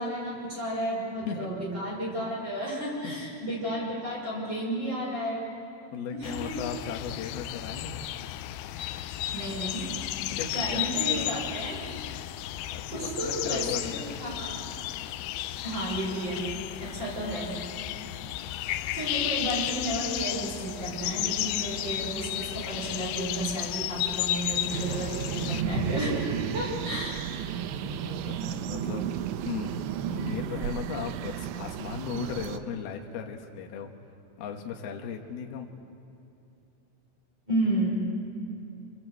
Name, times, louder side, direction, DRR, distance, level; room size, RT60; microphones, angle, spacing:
voice 1, 0.0-5.5 6.1-6.5 9.3-9.9 10.5-11.8 12.9-14.6 15.6-16.5 16.8-17.6 18.9-26.2 26.5-27.2 37.5-38.0, right 1 dB, 25° right, -6 dB, 6.1 m, -32 dB
voice 2, 1.2-1.7 3.0-3.2 5.9-8.0 10.4-11.4 12.7-14.3 18.2-18.5 27.0-27.1 27.5-29.1 29.4-29.8 30.1-33.9 34.4-35.7, left 7 dB, 60° left, 2 dB, 3.1 m, -37 dB
sound 1, 6.2-25.6, left 13 dB, 85° left, 3.1 m, -33 dB
sound 2, 24.7-32.6, right 9 dB, 80° right, 3.0 m, -33 dB
29.5 x 23.0 x 8.0 m, 2.7 s
omnidirectional pair, 5.6 m